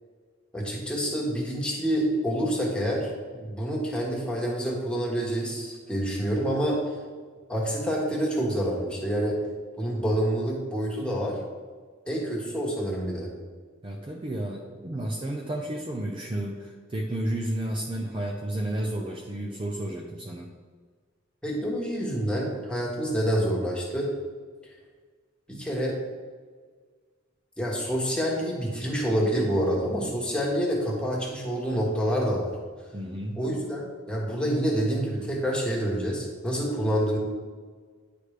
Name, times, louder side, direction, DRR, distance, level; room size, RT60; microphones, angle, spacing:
voice 1, 0.5-3.1 3.4-6.8 7.5-9.4 9.8-11.4 12.1-13.3 21.4-24.1 25.5-26.0 27.6-32.5 33.4-37.2, equal, 5° left, -3 dB, 1.5 m, -27 dB
voice 2, 13.8-20.5 32.9-33.5, right 1 dB, 25° right, 0 dB, 0.6 m, -32 dB
9.6 x 5.0 x 3.3 m, 1.5 s
head